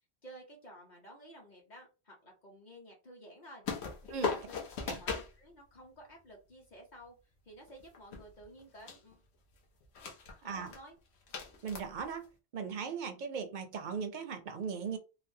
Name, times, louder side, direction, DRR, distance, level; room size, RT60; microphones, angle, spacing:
voice 1, 0.2-3.6 4.1-4.6 5.0-9.2 10.4-11.0, equal, 45° left, 0.9 m, -53 dB
sound 1, 3.6-5.3 7.7-8.6 8.9-9.1 9.8-10.4 10.7-10.8 11.3-12.2, left 5 dB, 75° left, 1.0 m, -38 dB
voice 2, 11.6-12.3 12.5-15.0, right 6 dB, 55° right, 0.5 m, -38 dB
3.2 x 2.1 x 2.6 m
omnidirectional pair, 1.1 m